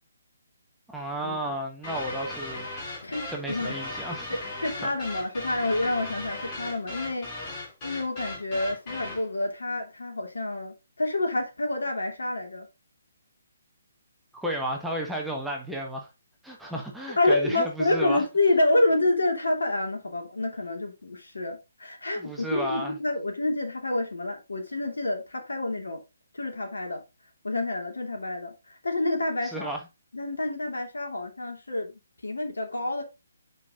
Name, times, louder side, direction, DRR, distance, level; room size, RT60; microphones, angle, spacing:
voice 1, 0.9-2.7 3.3-4.4 14.3-16.1 16.4-18.2 22.2-23.0 29.5-29.8, right 1 dB, 5° right, 1.4 m, -33 dB
sound 1, 1.8-9.3, left 2 dB, 30° left, 4.7 m, -37 dB
voice 2, 3.0-3.7 4.3-7.3 7.8-12.7 17.2-26.0 26.3-27.0 27.4-28.5 28.8-29.7 30.1-31.9 32.2-33.0, left 2 dB, 70° left, 3.0 m, -28 dB
8.1 x 5.4 x 3.9 m
figure-of-eight pair, 140°, 0 cm